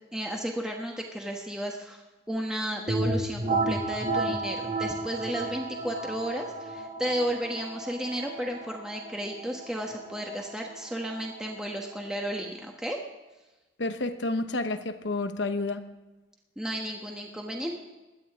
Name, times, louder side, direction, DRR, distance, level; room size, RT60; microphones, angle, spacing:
voice 1, 0.1-2.0 2.3-13.0 16.6-17.8, equal, 5° right, 0 dB, 1.2 m, -33 dB
sound 1, 2.9-12.4, right 2 dB, 40° right, 1.6 m, -33 dB
voice 2, 13.8-15.9, left 2 dB, 65° left, 9 dB, 1.0 m, -30 dB
17.0 x 11.5 x 3.7 m, 1.1 s
head